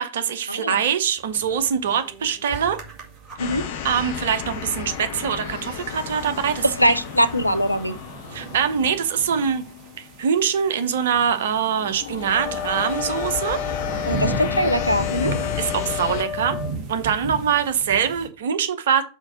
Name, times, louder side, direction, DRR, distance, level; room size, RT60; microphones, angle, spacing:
voice 1, 0.0-2.8 3.8-7.0 8.3-9.6 10.0-13.6 13.9-14.1 15.6-16.6 16.9-19.0, right 7 dB, 60° right, 0.9 m, -23 dB
sound 1, 1.2-18.3, right 3 dB, 30° right, 2.1 m, -37 dB
sound 2, 3.4-10.3 10.8-11.1 11.4-16.2, left 8 dB, 50° left, 1.0 m, -33 dB
voice 2, 6.6-7.9 14.1-15.3, equal, 90° left, 0.5 m, -21 dB
Wind instrument woodwind instrument, 12.3-16.8, left 8 dB, 10° left, 1.2 m, -31 dB
5.7 x 4.7 x 5.7 m
figure-of-eight pair, 90°, 0 cm